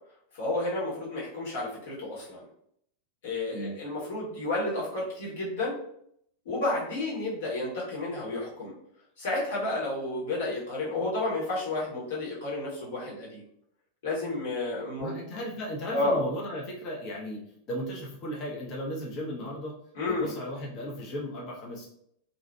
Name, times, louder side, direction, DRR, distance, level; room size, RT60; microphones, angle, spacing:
voice 1, 0.4-2.4 3.2-5.8 6.4-8.7 9.2-13.4 14.0-15.1 15.9-16.2 19.9-20.3, left 2 dB, 55° left, -5 dB, 1.1 m, -31 dB
voice 2, 15.0-17.4 17.7-19.7 20.1-21.9, equal, 35° left, -2 dB, 0.7 m, -35 dB
2.7 x 2.4 x 2.2 m, 0.70 s
figure-of-eight pair, 90°, 0 cm